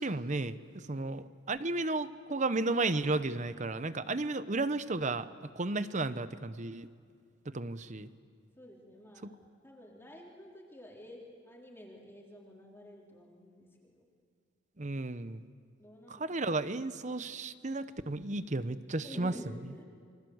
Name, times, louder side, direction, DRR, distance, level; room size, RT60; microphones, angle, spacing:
voice 1, 0.0-6.9 7.5-8.1 9.2-9.3 14.8-15.4 16.1-19.3, right 2 dB, 35° right, 13 dB, 0.8 m, -33 dB
voice 2, 8.6-14.1 15.8-16.4 19.0-19.8, equal, 10° left, -2 dB, 3.7 m, -50 dB
28.5 x 25.0 x 8.0 m, 2.2 s
head